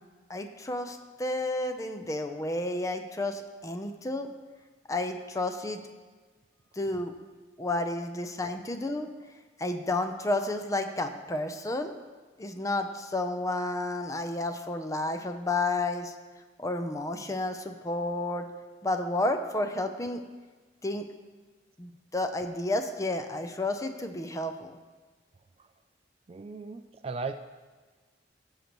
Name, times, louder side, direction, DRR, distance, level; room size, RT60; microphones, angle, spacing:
voice 1, 0.3-4.3 4.9-5.8 6.8-7.1 7.6-9.1 9.6-11.9 12.4-16.1 16.6-18.5 18.8-20.2 20.8-21.0 21.8-24.8, left 2 dB, 15° left, 6 dB, 0.5 m, -31 dB
voice 2, 26.3-27.3, right 4 dB, 30° right, 8 dB, 0.3 m, -37 dB
15.5 x 6.6 x 3.0 m, 1.4 s
head